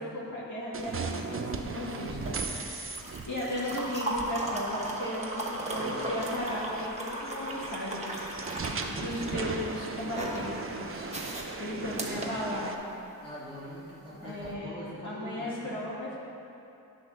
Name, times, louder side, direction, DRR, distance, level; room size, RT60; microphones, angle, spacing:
voice 1, 0.0-11.1 11.6-12.8 14.2-16.2, left 1 dB, 55° left, -7 dB, 1.9 m, -36 dB
sound 1, 0.7-12.7, right 4 dB, 40° right, 0.6 m, -38 dB
sound 2, 0.8-13.1 14.3-14.5, right 1 dB, 20° right, 1.1 m, -37 dB
voice 2, 1.8-2.3 5.7-6.2 12.0-12.2 13.2-15.8, equal, 15° left, -8 dB, 2.1 m, -43 dB
10.0 x 4.1 x 6.2 m, 2.9 s
wide cardioid pair, 120°, 35 cm